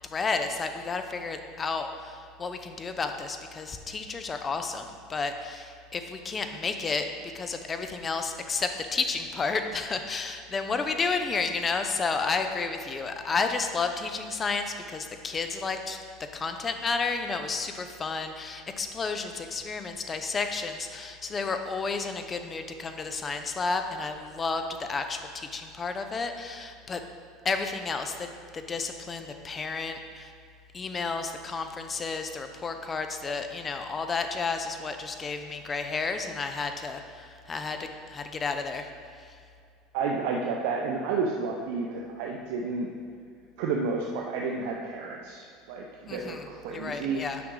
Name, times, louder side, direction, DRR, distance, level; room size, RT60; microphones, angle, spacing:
voice 1, 0.1-7.1 7.3-16.0 16.3-27.0 27.4-30.3 30.7-38.9 39.2-39.4 46.1-47.4, left 4 dB, 25° left, 7 dB, 0.7 m, -31 dB
voice 2, 39.9-42.9 43.6-47.2, right 4 dB, 75° right, -1 dB, 0.7 m, -31 dB
9.4 x 6.1 x 3.8 m, 2.3 s
supercardioid pair, 120°, 0 cm